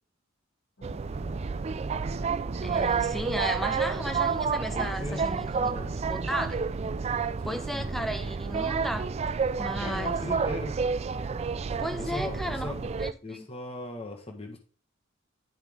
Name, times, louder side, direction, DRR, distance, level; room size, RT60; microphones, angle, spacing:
sound 1, 0.8-6.6, equal, 75° left, 1.7 m, -53 dB
sound 2, 0.8-13.1, right 5 dB, 30° right, 0.3 m, -30 dB
Thunderstorm, 0.8-12.4, right 2 dB, 45° right, 0.9 m, -44 dB
voice 1, 2.6-5.5 6.1-6.6 7.4-9.1 9.6-10.2 11.8-12.7 13.0-13.5, equal, ahead, 0.9 m, -34 dB
voice 2, 4.7-5.3 5.6-5.9 7.4-7.8 9.8-10.8 12.0-12.9 13.2-14.6, left 1 dB, 30° left, 1.4 m, -38 dB
10.5 x 5.6 x 3.6 m
head